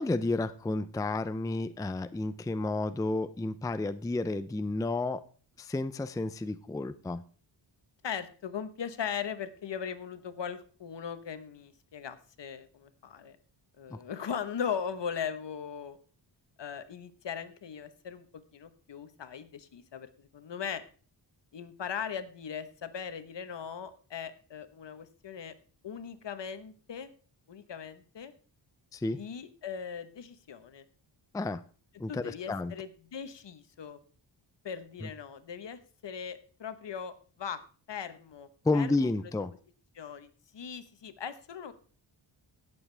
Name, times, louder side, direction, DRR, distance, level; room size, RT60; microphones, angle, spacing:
voice 1, 0.0-5.2 5.6-7.2 13.9-14.0 28.9-29.2 31.3-31.6 32.0-32.7 35.0-35.1 38.6-39.5, left 2 dB, 10° left, 12 dB, 0.4 m, -31 dB
voice 2, 8.0-13.4 13.8-16.0 16.6-20.8 21.5-25.5 25.8-27.1 27.5-28.3 29.1-30.8 32.1-34.0 34.6-37.6 37.9-39.1 39.9-41.7, left 7 dB, 65° left, 11 dB, 1.2 m, -39 dB
17.5 x 7.3 x 3.4 m, 0.39 s
cardioid pair, 80°, 46 cm